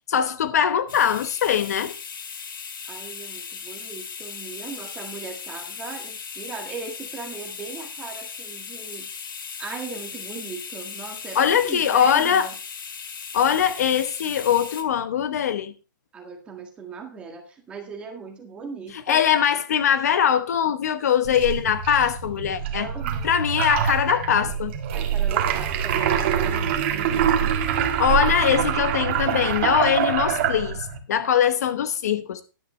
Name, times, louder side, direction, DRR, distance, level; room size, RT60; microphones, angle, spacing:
voice 1, 0.1-1.9 11.3-12.5 13.3-15.7 18.9-22.9 23.2-24.7 28.0-32.4, left 8 dB, 50° left, 1.0 m, -22 dB
sound 1, 0.9-14.8, left 6 dB, 90° left, 2.3 m, -37 dB
voice 2, 2.8-9.1 9.6-12.5 16.1-19.2 22.7-23.2 24.9-27.6, right 5 dB, 10° right, 1.7 m, -38 dB
sound 2, 21.2-31.0, right 8 dB, 35° right, 1.7 m, -25 dB
13.0 x 11.0 x 3.2 m
hypercardioid pair, 175°, 11 cm